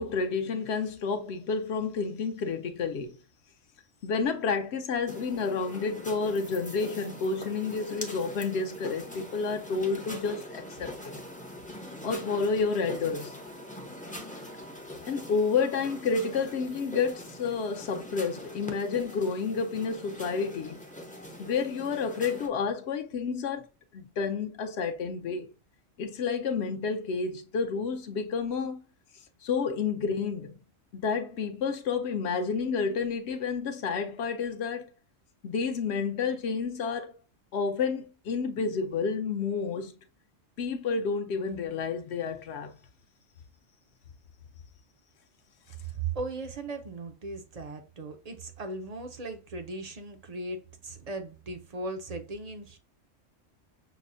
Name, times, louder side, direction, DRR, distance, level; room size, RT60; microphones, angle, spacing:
voice 1, 0.0-3.2 4.0-11.1 12.0-13.4 15.1-20.8 21.4-23.7 23.9-25.5 26.0-28.8 29.4-30.6 30.9-34.9 35.4-37.1 37.5-39.9 40.6-42.7, left 5 dB, 65° left, 0.8 m, -30 dB
sound 1, 5.1-22.5, left 1 dB, 10° left, 0.4 m, -43 dB
voice 2, 45.8-52.8, right 3 dB, 50° right, 0.5 m, -37 dB
6.0 x 2.0 x 2.5 m
omnidirectional pair, 1.3 m